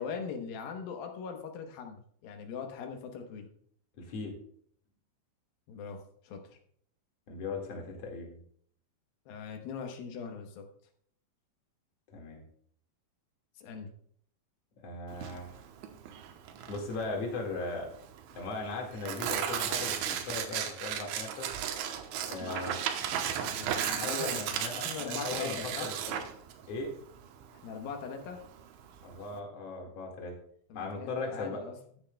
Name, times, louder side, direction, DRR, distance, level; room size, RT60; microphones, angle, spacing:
voice 1, 0.0-3.5 5.7-6.6 9.3-10.6 13.6-13.9 22.5-22.8 23.1-25.9 27.5-28.4 30.7-31.8, left 6 dB, 75° left, 4 dB, 2.2 m, -41 dB
voice 2, 4.0-4.3 7.3-8.4 12.1-12.4 14.8-15.5 16.7-17.9 18.3-21.5 22.2-22.8 23.9-26.2 26.7-26.9 29.0-30.3 30.7-31.6, left 3 dB, 50° left, 0 dB, 2.1 m, -38 dB
Tearing, 15.1-29.4, right 9 dB, 80° right, 3.2 m, -35 dB
14.0 x 9.6 x 2.3 m, 0.62 s
omnidirectional pair, 5.5 m